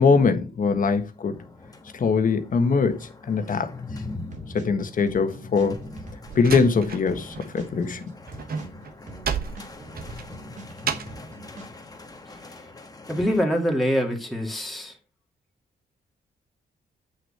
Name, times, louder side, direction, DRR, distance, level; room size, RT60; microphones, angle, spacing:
voice 1, 0.0-1.3 1.9-3.7 4.5-5.8 6.3-8.0, left 5 dB, 55° left, 1.4 m, -22 dB
sound 1, 1.1-13.4, left 3 dB, 20° left, 1.3 m, -42 dB
sound 2, 4.3-6.7 7.1-10.7 11.1-11.7, right 2 dB, 45° right, 2.3 m, -44 dB
Slam, 5.7-7.5 7.8-11.3, right 7 dB, 60° right, 1.1 m, -33 dB
voice 2, 13.1-15.0, equal, ahead, 2.1 m, -24 dB
8.4 x 6.5 x 4.3 m
cardioid pair, 115°, 17 cm